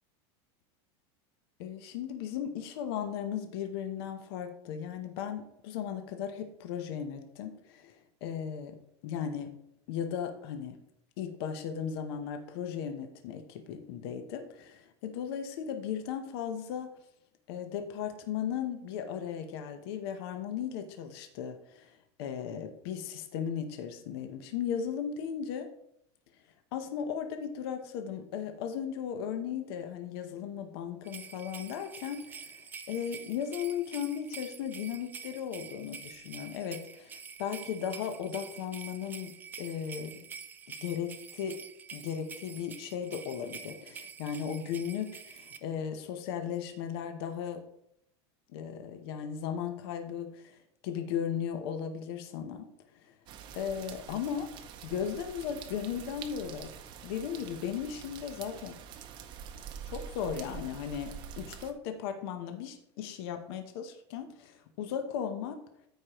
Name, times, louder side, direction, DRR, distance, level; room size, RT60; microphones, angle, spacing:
voice 1, 1.6-7.9 8.2-8.8 9.0-9.5 9.9-10.8 11.2-16.9 17.5-21.9 22.2-25.7 26.7-32.6 32.9-40.1 40.8-41.6 41.9-47.6 48.5-50.5 50.8-52.7 53.5-54.5 54.8-56.7 57.0-58.8 59.9-65.6, left 8 dB, 60° left, 6 dB, 0.9 m, -36 dB
sound 1, 31.0-45.6, right 6 dB, 15° right, 0.4 m, -47 dB
sound 2, 53.3-61.7, right 8 dB, 35° right, 0.7 m, -46 dB
13.5 x 4.9 x 3.0 m, 0.77 s
supercardioid pair, 165°, 14 cm